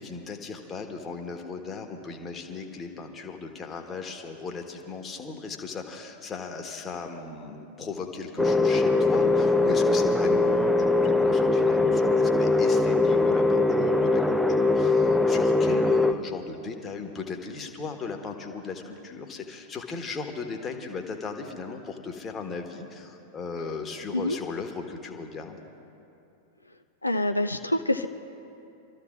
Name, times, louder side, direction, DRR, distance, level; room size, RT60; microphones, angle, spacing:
voice 1, 0.0-25.6, left 4 dB, 20° left, 4 dB, 1.3 m, -37 dB
sound 1, 8.4-16.1, left 3 dB, ahead, 0.5 m, -21 dB
voice 2, 27.0-28.1, left 1 dB, 85° left, 6 dB, 0.4 m, -26 dB
28.0 x 13.5 x 2.5 m, 2.7 s
figure-of-eight pair, 90°, 0 cm